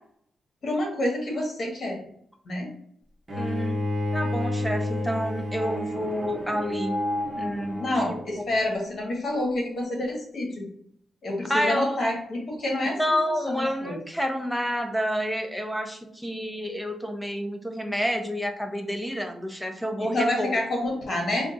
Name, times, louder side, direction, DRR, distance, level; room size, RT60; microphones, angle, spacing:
voice 1, 0.6-2.0 2.4-2.7 7.8-10.7 11.2-13.1 13.5-14.0 20.0-21.5, left 1 dB, 50° left, -1 dB, 1.4 m, -28 dB
Bowed string instrument, 3.3-8.3, left 1 dB, 20° right, 1.0 m, -30 dB
voice 2, 3.4-3.8 4.1-7.0 7.4-8.0 8.4-8.5 11.5-12.0 13.0-20.6, equal, ahead, 4 dB, 0.5 m, -29 dB
3.5 x 2.4 x 3.8 m, 0.67 s
wide cardioid pair, 135°, 0 cm